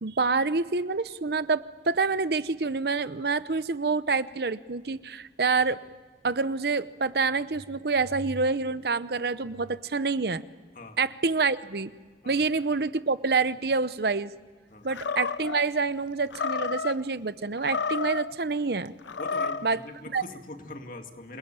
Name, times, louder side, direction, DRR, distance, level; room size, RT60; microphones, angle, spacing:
voice 1, 0.0-5.8 6.2-10.4 11.0-11.9 12.2-14.3 14.8-18.9 19.6-19.8 20.1-20.2, right 4 dB, 60° right, 14 dB, 0.8 m, -27 dB
Animal, 14.9-15.6 16.3-17.0 17.6-18.3 19.0-19.7, left 4 dB, 85° left, 0.7 m, -30 dB
voice 2, 19.2-21.4, left 2 dB, 50° left, 5 dB, 2.2 m, -42 dB
27.5 x 21.5 x 9.0 m, 1.5 s
head